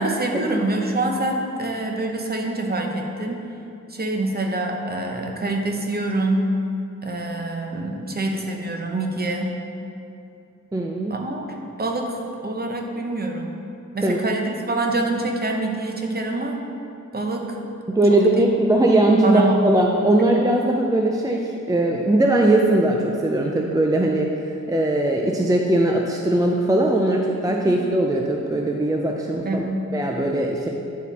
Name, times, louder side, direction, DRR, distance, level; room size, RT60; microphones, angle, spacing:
voice 1, 0.0-3.4 3.9-6.5 7.0-9.5 11.1-11.4 11.8-12.2 12.4-13.5 13.9-16.6 17.1-17.6 18.1-18.2 19.2-19.5 27.7-27.8 29.4-29.8, right 2 dB, 30° right, 2 dB, 0.8 m, -25 dB
voice 2, 10.7-11.2 14.0-14.3 17.9-29.6 29.9-30.7, right 1 dB, 10° right, 0 dB, 0.3 m, -20 dB
9.1 x 4.1 x 4.1 m, 2.6 s
wide cardioid pair, 105°, 33 cm